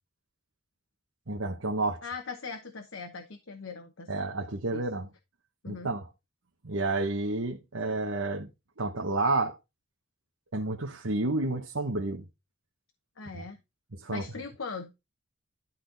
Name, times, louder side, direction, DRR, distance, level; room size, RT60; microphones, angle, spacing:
voice 1, 1.3-2.0 4.1-5.1 5.7-6.1 6.6-8.5 8.8-9.6 10.5-12.2 13.3-13.4 14.0-14.2, right 2 dB, 90° right, 1.1 m, -30 dB
voice 2, 2.0-4.3 4.7-4.8 5.6-5.9 13.2-13.6 14.1-14.9, left 4 dB, 80° left, 1.1 m, -40 dB
12.0 x 4.2 x 4.0 m
head